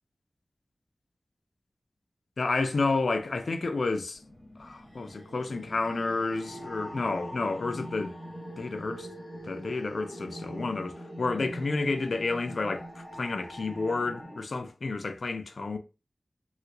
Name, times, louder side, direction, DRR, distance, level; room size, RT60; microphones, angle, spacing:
voice 1, 2.4-4.2 4.6-8.2 8.6-9.1 9.4-12.9 13.2-15.8, left 3 dB, 75° left, 0.4 m, -30 dB
sound 1, 4.2-14.4, equal, 25° left, 1.2 m, -43 dB
3.2 x 2.4 x 2.8 m
wide cardioid pair, 60°, 0 cm